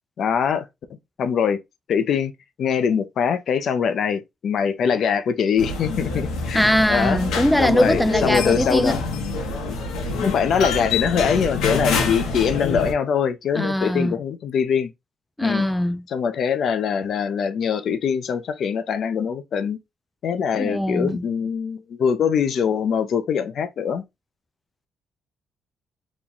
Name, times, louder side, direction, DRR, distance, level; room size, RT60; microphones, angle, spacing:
voice 1, 0.2-0.7 1.2-1.6 1.9-2.3 2.6-7.2 7.6-9.0 10.2-14.9 15.4-15.7 16.1-19.8 20.2-24.0, left 7 dB, 65° left, 0.5 m, -23 dB
sound 1, 5.6-12.9, left 4 dB, 90° left, 0.9 m, -26 dB
voice 2, 6.5-8.9 13.5-14.1 15.4-16.0 20.6-21.2, equal, 5° left, 0.3 m, -21 dB
3.0 x 2.2 x 3.9 m
cardioid pair, 90°, 0 cm